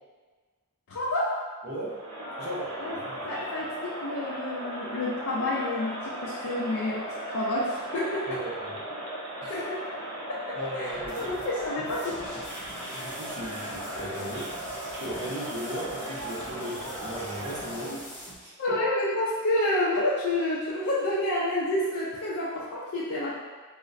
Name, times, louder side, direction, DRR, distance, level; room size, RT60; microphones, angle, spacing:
voice 1, 0.9-1.3 2.8-2.9 3.2-8.3 9.4-9.8 10.5-10.9 11.2-12.4 18.6-23.4, left 1 dB, 65° left, -8 dB, 0.5 m, -29 dB
voice 2, 1.6-2.0 2.4-3.5 8.3-8.8 9.4-9.6 10.5-11.4 11.8-11.9 12.9-18.0 18.4-18.8, right 1 dB, 50° right, -6 dB, 0.8 m, -37 dB
Crowd, 1.8-18.1, right 1 dB, 85° right, 0.8 m, -37 dB
sound 1, 10.8-18.3, equal, 10° left, 0.5 m, -44 dB
3.9 x 2.1 x 2.5 m, 1.4 s
head